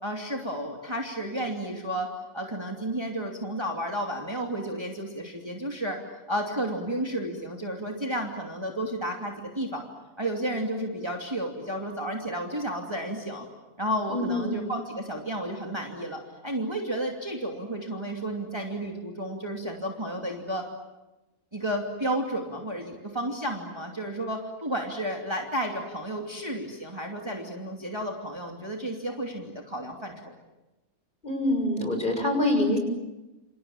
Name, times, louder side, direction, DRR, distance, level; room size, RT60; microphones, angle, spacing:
voice 1, 0.0-6.0 6.3-9.8 10.2-13.5 13.8-20.7 21.5-30.3, right 1 dB, 20° right, 1 dB, 2.8 m, -32 dB
voice 2, 14.1-14.6 31.2-32.8, left 1 dB, 30° left, 4 dB, 7.0 m, -25 dB
28.5 x 28.0 x 7.4 m, 1.0 s
omnidirectional pair, 1.5 m